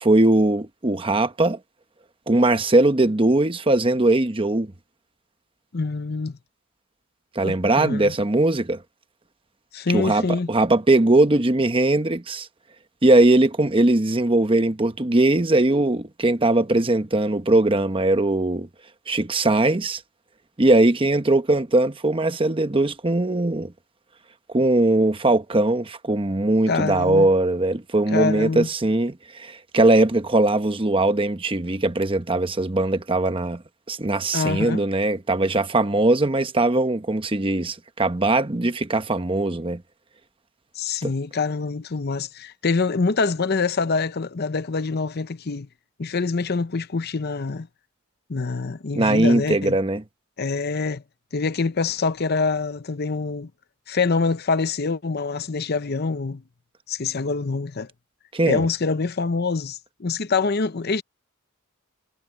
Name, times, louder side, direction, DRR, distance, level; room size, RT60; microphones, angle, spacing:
voice 1, 0.0-1.6 2.3-4.7 7.3-8.8 9.9-12.5 13.0-18.7 19.1-20.0 20.6-23.7 24.5-33.6 33.9-39.8 41.0-41.1 48.9-50.0 58.3-58.6, right 2 dB, 25° right, 1.0 m, -20 dB
voice 2, 5.7-6.4 7.4-8.1 9.7-10.5 26.7-27.3 28.1-28.7 34.3-34.8 40.7-45.7 46.0-47.7 48.3-49.8 50.4-51.0 51.3-53.5 53.9-56.4 56.9-57.9 58.4-61.0, left 4 dB, 50° left, 0.7 m, -25 dB
head